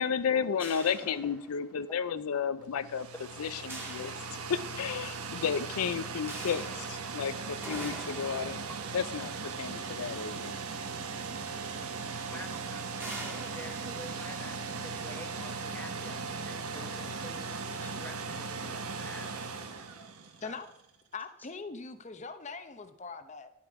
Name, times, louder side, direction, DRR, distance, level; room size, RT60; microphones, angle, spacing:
voice 1, 0.0-3.1 3.4-4.1 4.5-8.6 8.9-10.5, left 7 dB, 80° left, 14 dB, 0.5 m, -32 dB
sound 1, 0.6-2.0 3.7-5.0 6.3-10.7 11.7-11.8 12.1-12.3 13.0-15.0, right 1 dB, 10° right, 1.8 m, -46 dB
sound 2, 2.6-20.7, right 4 dB, 85° right, 1.1 m, -38 dB
voice 2, 12.3-19.3 20.4-20.6, left 1 dB, 10° left, 4 dB, 1.0 m, -48 dB
voice 3, 21.1-23.5, left 4 dB, 30° left, 10 dB, 0.7 m, -41 dB
11.0 x 8.5 x 4.7 m, 0.80 s
head